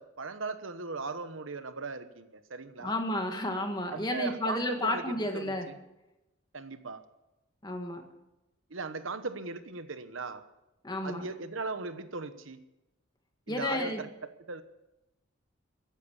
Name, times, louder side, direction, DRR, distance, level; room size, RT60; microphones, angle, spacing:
voice 1, 0.0-2.9 3.9-5.0 5.3-5.8 6.5-7.0 8.7-10.4 11.0-12.6 13.5-14.1 14.5-14.6, right 3 dB, 75° right, 11 dB, 1.1 m, -38 dB
voice 2, 2.8-5.7 7.6-8.1 10.8-11.3 13.5-14.0, left 1 dB, 20° left, 4 dB, 1.9 m, -32 dB
15.5 x 10.5 x 7.3 m, 0.94 s
head